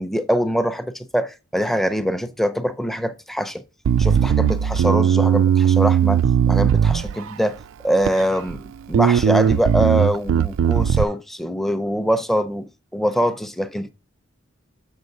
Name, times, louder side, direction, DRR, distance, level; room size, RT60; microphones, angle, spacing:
voice 1, 0.0-3.6 4.0-6.2 6.5-13.9, equal, ahead, 0.5 m, -23 dB
Bass guitar, 3.8-7.4 8.0-8.6 8.9-11.0, right 8 dB, 80° right, 0.3 m, -18 dB
7.6 x 6.4 x 3.9 m
head